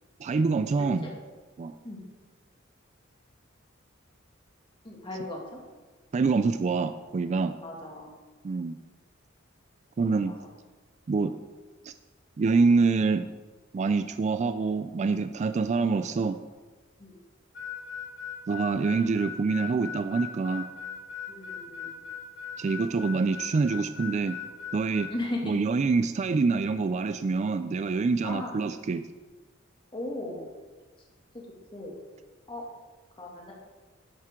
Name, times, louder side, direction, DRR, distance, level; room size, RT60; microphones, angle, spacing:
voice 1, 0.2-1.1 1.6-1.7 6.1-7.5 8.4-8.8 10.0-10.3 11.1-11.3 11.8-11.9 12.4-13.3 13.7-16.4 18.5-20.7 22.6-24.4 24.7-25.1 25.4-29.0, right 4 dB, 35° right, 10 dB, 0.3 m, -26 dB
voice 2, 0.8-1.1 1.8-2.0 4.8-5.6 7.6-8.1 10.0-10.3 17.0-17.2 21.3-21.9 25.1-25.6 28.2-28.5 29.9-30.4 31.3-31.4 31.7-31.9 32.5-32.6 33.2-33.5, left 1 dB, 25° left, -2 dB, 2.2 m, -37 dB
Harmonica, 17.5-25.1, left 8 dB, 65° left, 3.3 m, -39 dB
10.5 x 9.0 x 3.7 m, 1.3 s
head